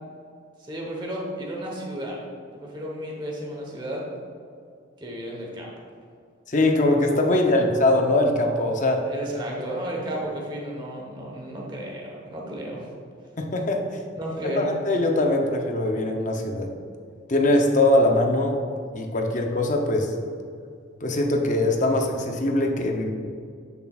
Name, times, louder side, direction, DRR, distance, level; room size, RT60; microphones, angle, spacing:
voice 1, 0.6-2.2 2.5-4.0 5.0-5.7 7.5-7.6 9.0-12.8 14.1-14.7, right 1 dB, 20° right, -2 dB, 1.0 m, -33 dB
voice 2, 6.5-9.0 13.4-13.8 14.4-16.7 17.3-18.6 18.9-20.1 21.0-23.1, left 1 dB, 40° left, 2 dB, 0.6 m, -22 dB
8.1 x 6.9 x 2.4 m, 2.3 s
head